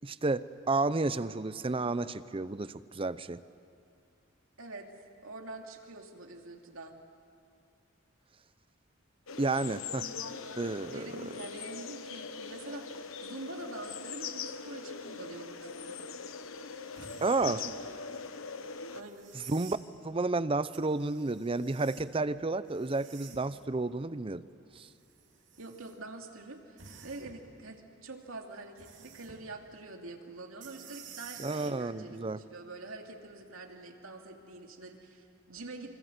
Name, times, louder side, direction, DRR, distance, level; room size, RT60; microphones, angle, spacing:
voice 1, 0.0-3.4 9.4-10.0 10.6-11.0 17.2-17.6 19.3-19.8 20.0-24.4 24.8-24.9 31.4-32.4, right 3 dB, 25° right, 15 dB, 0.6 m, -31 dB
voice 2, 4.6-4.9 5.2-7.0 9.9-10.4 10.8-16.0 17.5-17.9 18.2-18.3 18.9-19.3 25.6-36.0, right 2 dB, 85° right, 2 dB, 2.7 m, -45 dB
sound 1, 9.3-19.0, left 5 dB, 80° left, 1.2 m, -41 dB
sound 2, 16.9-17.6 19.0-19.8 20.7-22.1 22.7-23.6 24.7-25.9 26.8-27.4 28.8-29.4 30.6-31.8 33.5-33.6, right 6 dB, 60° right, 3.1 m, -51 dB
27.5 x 25.0 x 8.0 m, 2.3 s
head